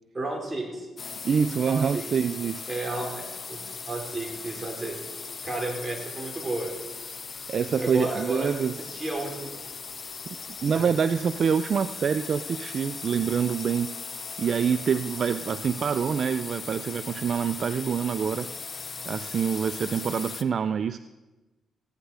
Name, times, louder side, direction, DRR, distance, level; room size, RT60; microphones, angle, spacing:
voice 1, 0.1-0.9 1.7-2.0 2.7-3.6 3.9-5.0 5.4-6.7 7.5-9.5 10.7-10.9, right 2 dB, 30° right, 0 dB, 4.2 m, -32 dB
sound 1, 1.0-20.4, left 5 dB, 45° left, 0.8 m, -38 dB
voice 2, 1.2-2.7 7.5-8.7 10.6-13.9 14.4-18.5 19.1-21.0, right 7 dB, 60° right, 13 dB, 0.4 m, -26 dB
15.5 x 10.5 x 4.8 m, 1.1 s
cardioid pair, 70°, 0 cm